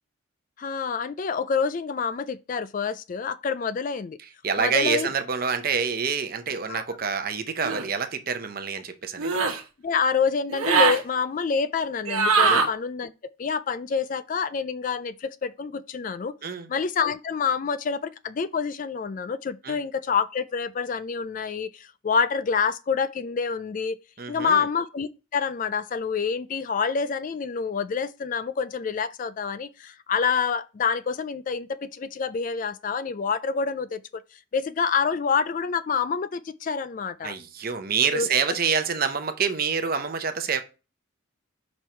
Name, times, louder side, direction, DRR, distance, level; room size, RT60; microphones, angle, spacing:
voice 1, 0.6-4.2 4.6-5.1 6.7-6.8 9.8-13.1 13.4-16.3 16.7-24.0 24.3-34.2 34.5-37.3 38.1-38.6, left 5 dB, 40° left, 0.3 m, -27 dB
voice 2, 4.4-9.3 12.4-12.6 16.4-16.7 19.6-19.8 24.2-24.7 37.2-40.6, right 6 dB, 45° right, 0.7 m, -27 dB
sound 1, 7.6-7.9 9.2-9.6 10.5-11.0 12.1-12.7, right 5 dB, 90° right, 1.1 m, -21 dB
5.3 x 4.6 x 4.4 m
head